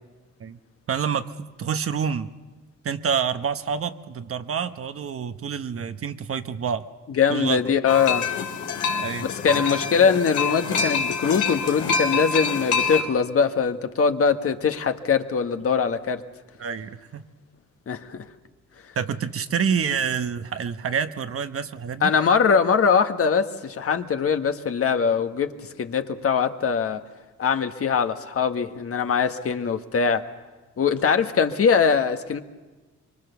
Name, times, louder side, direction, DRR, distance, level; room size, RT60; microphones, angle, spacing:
voice 1, 0.9-2.3 2.8-6.8 7.3-7.6 9.0-9.3 16.6-17.2 19.0-22.1, right 7 dB, 50° right, 9 dB, 1.1 m, -27 dB
voice 2, 7.2-8.3 9.2-16.2 17.9-18.2 22.0-25.5 25.8-27.0 27.4-30.2 30.8-32.4, left 6 dB, 50° left, 7 dB, 1.5 m, -22 dB
sound 1, 7.9-13.0, left 5 dB, 80° left, 2.8 m, -26 dB
24.5 x 23.5 x 7.0 m, 1.2 s
cardioid pair, 90°, 30 cm